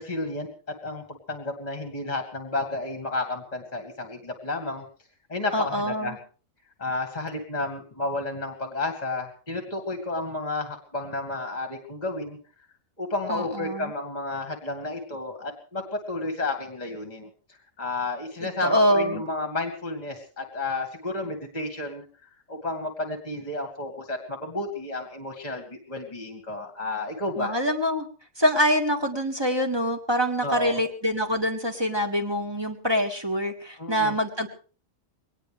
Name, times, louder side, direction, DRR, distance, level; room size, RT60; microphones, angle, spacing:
voice 1, 0.0-4.8 5.3-6.1 6.8-12.4 13.0-17.3 17.8-22.0 22.5-27.5 30.4-30.8 33.8-34.2, left 2 dB, 30° left, 5 dB, 2.2 m, -31 dB
voice 2, 5.5-6.2 13.3-13.9 18.4-19.2 27.4-28.1 28.4-34.5, equal, 20° right, 4 dB, 2.0 m, -25 dB
21.5 x 19.0 x 3.4 m, 0.39 s
omnidirectional pair, 1.4 m